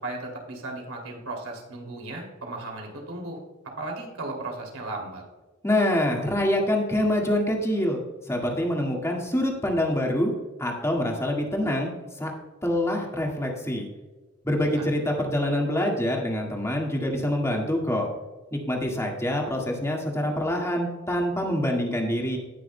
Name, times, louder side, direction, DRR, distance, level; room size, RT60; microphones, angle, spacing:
voice 1, 0.0-3.4 3.8-5.2 14.6-14.9, right 2 dB, 80° right, 1 dB, 2.7 m, -36 dB
voice 2, 5.6-8.0 8.3-10.3 10.6-11.9 12.2-12.3 12.6-13.9 14.4-18.1 18.5-22.4, left 1 dB, 15° left, 0 dB, 1.8 m, -25 dB
18.0 x 6.3 x 2.2 m, 1.2 s
head